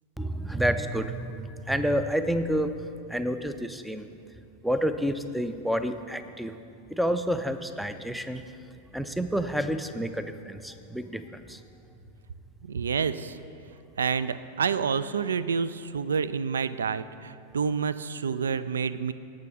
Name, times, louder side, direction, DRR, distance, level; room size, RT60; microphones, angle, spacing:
voice 1, 0.2-2.7 3.1-4.1 4.6-6.5 6.9-8.4 8.9-11.6, equal, ahead, 10 dB, 0.5 m, -29 dB
voice 2, 12.6-13.4 14.0-19.1, right 6 dB, 70° right, 15 dB, 0.3 m, -28 dB
18.0 x 6.3 x 3.5 m, 2.6 s
figure-of-eight pair, 90°, 0 cm